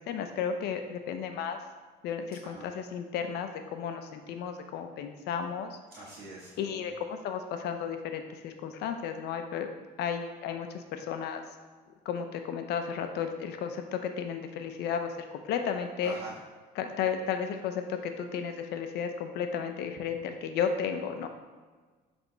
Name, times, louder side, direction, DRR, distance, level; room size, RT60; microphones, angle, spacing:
voice 1, 0.1-1.6 2.0-5.8 6.6-9.7 10.0-11.4 12.0-15.1 15.5-16.1 16.8-21.3, left 7 dB, 80° left, 6 dB, 0.7 m, -33 dB
voice 2, 5.9-6.5 16.0-16.3, right 2 dB, 70° right, -7 dB, 1.6 m, -43 dB
7.1 x 3.5 x 4.0 m, 1.4 s
cardioid pair, 110°, 17 cm